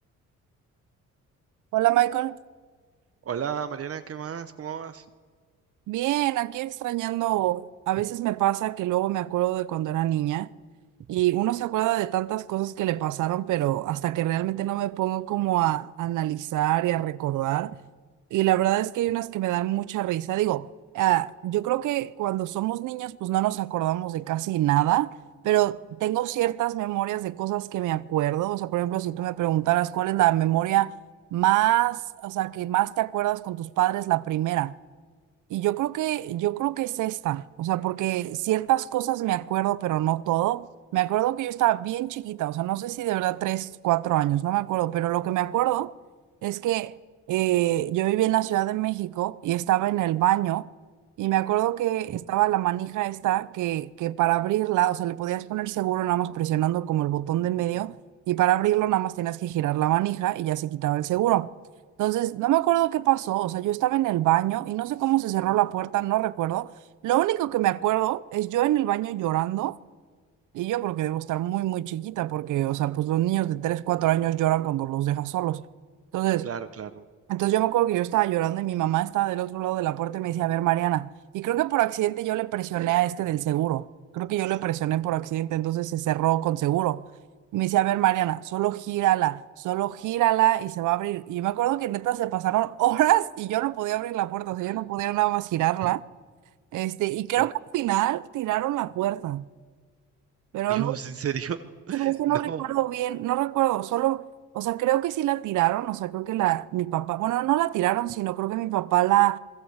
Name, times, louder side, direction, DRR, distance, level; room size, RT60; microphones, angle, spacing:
voice 1, 1.7-2.4 5.9-10.5 11.1-17.7 18.3-20.7 20.9-25.1 25.4-30.9 31.3-34.8 35.5-45.9 46.4-46.9 47.3-50.7 51.2-58.0 58.3-61.5 62.0-66.7 67.0-69.8 70.5-75.6 76.1-76.5 77.3-83.9 84.1-87.0 87.5-96.0 96.7-99.5 100.5-101.0 101.9-104.2 104.5-109.4, right 15 dB, 80° right, 0.8 m, -25 dB
voice 2, 3.2-5.0 52.1-52.2 76.4-77.0 94.7-94.8 97.4-97.5 100.7-101.6 101.9-102.6, right 8 dB, 50° right, 1.1 m, -33 dB
27.0 x 20.5 x 8.1 m
cardioid pair, 90°, 30 cm